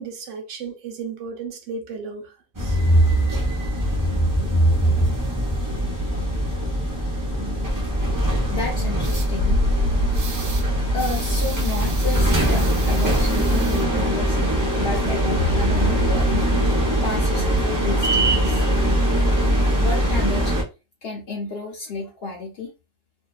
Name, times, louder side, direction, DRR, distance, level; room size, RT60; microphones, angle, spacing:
voice 1, 0.0-2.8, right 5 dB, 70° right, 0.9 m, -34 dB
sound 1, 2.5-20.6, right 1 dB, 30° right, 0.3 m, -21 dB
sound 2, 5.6-20.0, left 1 dB, 85° left, 1.1 m, -30 dB
voice 2, 8.5-9.6 10.6-14.4 14.8-16.5 17.0-18.7 19.8-20.6 21.0-22.7, left 3 dB, 60° left, 0.7 m, -31 dB
sound 3, 9.0-9.3 10.1-10.7 11.0-13.8, right 4 dB, 90° right, 1.1 m, -37 dB
2.6 x 2.2 x 2.2 m
omnidirectional pair, 1.4 m